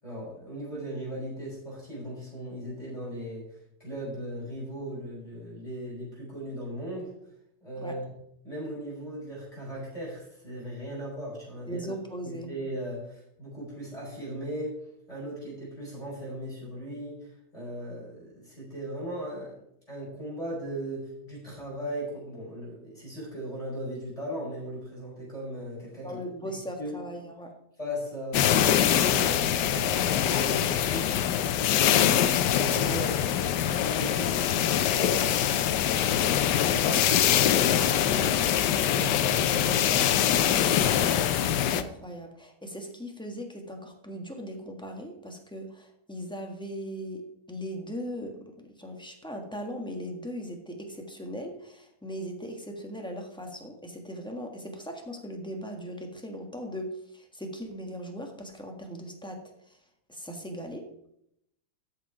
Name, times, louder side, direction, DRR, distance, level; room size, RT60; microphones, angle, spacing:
voice 1, 0.0-7.1 7.6-8.1 8.4-11.8 12.2-14.8 15.1-19.6 19.9-26.2 26.8-27.0 27.8-31.1 31.6-32.3 32.5-34.3 34.7-35.3 36.0-37.4 37.8-38.4 38.8-41.0, equal, 20° left, -6 dB, 5.3 m, -38 dB
voice 2, 11.7-12.5 26.0-27.5 41.5-59.4 59.7-59.8 60.1-60.9, equal, 5° left, 2 dB, 1.4 m, -39 dB
sound 1, 28.3-41.8, left 10 dB, 80° left, 1.3 m, -24 dB
14.0 x 5.8 x 4.9 m, 0.78 s
omnidirectional pair, 1.8 m